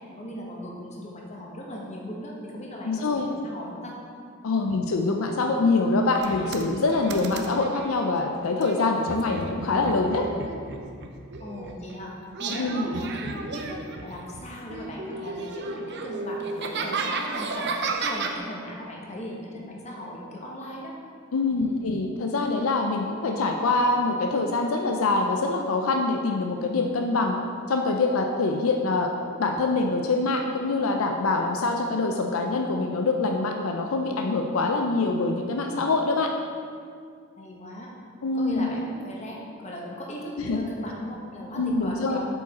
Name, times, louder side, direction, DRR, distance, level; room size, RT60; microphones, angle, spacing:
voice 1, 0.1-4.0 4.6-4.8 11.4-12.1 12.4-20.9 21.5-21.9 37.4-37.9 38.3-42.2, equal, 30° left, -2 dB, 1.1 m, -38 dB
voice 2, 2.8-3.3 4.4-10.3 12.5-12.9 21.3-27.4 27.7-29.1 29.4-36.3 38.2-38.7 40.4-40.6 41.6-42.2, left 3 dB, 80° left, 3 dB, 0.5 m, -24 dB
sound 1, 6.2-7.9 8.6-11.9 12.3-14.4 14.7-18.4, right 3 dB, 55° right, 0.6 m, -33 dB
7.8 x 5.1 x 4.2 m, 2.2 s
head